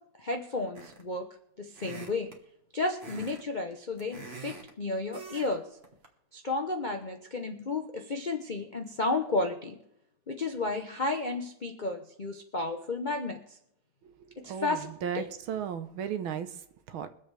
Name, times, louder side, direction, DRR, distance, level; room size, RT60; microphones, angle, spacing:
voice 1, 0.2-1.3 1.6-2.3 2.7-5.7 6.3-9.8 10.3-13.6 14.4-14.9 15.1-15.3, left 3 dB, 55° left, 4 dB, 0.5 m, -32 dB
sound 1, 0.7-1.2 1.7-2.4 3.0-3.4 3.7-4.7 5.1-5.5 5.8-6.1, right 3 dB, 35° right, 1.5 m, -45 dB
voice 2, 14.5-16.5 16.9-17.1, right 8 dB, 80° right, 10 dB, 1.7 m, -34 dB
23.0 x 7.7 x 3.4 m, 0.75 s
omnidirectional pair, 2.3 m